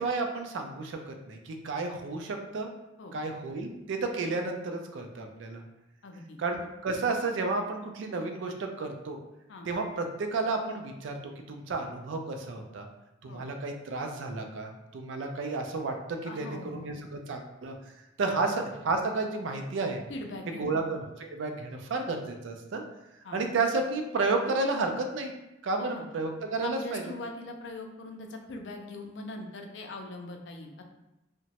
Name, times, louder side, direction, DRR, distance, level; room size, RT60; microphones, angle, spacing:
voice 1, 0.0-2.7 3.1-5.6 6.4-9.2 9.7-11.2 11.5-12.9 13.2-17.7 18.2-20.0 20.6-22.8 23.3-25.3 25.6-27.0, right 3 dB, 70° right, 4 dB, 0.4 m, -32 dB
voice 2, 6.0-6.4 9.5-9.7 13.3-13.4 16.2-16.9 18.3-18.4 20.1-20.8 23.2-23.4 25.8-26.1 26.6-30.8, left 2 dB, 65° left, 3 dB, 0.4 m, -41 dB
2.9 x 2.1 x 2.8 m, 0.95 s
head